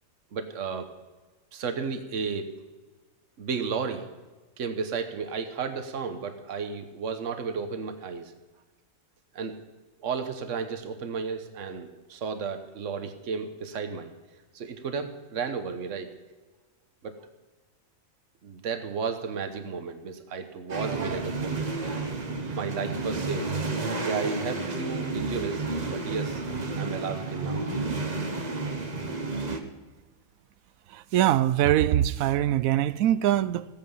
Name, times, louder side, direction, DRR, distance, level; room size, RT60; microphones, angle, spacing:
voice 1, 0.3-0.9 1.5-2.5 3.4-4.1 4.6-8.3 9.3-9.6 10.0-14.1 14.5-16.1 17.0-17.2 18.4-21.7 22.5-23.7 24.0-26.4 26.8-27.6, right 5 dB, 65° right, 1.4 m, -33 dB
sound 1, 20.7-29.6, right 3 dB, 30° right, 1.2 m, -31 dB
voice 2, 30.9-33.7, right 12 dB, 80° right, 1.0 m, -23 dB
15.5 x 8.9 x 5.5 m
omnidirectional pair, 1.4 m